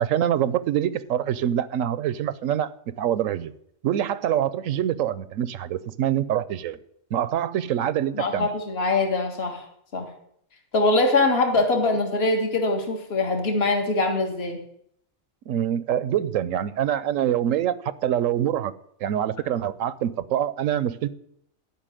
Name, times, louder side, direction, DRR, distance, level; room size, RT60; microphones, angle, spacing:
voice 1, 0.0-2.7 3.0-3.5 3.8-6.8 7.1-8.5 15.5-18.7 19.0-21.1, right 10 dB, 75° right, 1.0 m, -25 dB
voice 2, 8.1-9.6 9.9-10.1 10.7-14.6, left 2 dB, 50° left, 1.9 m, -23 dB
12.5 x 5.8 x 9.1 m
omnidirectional pair, 1.4 m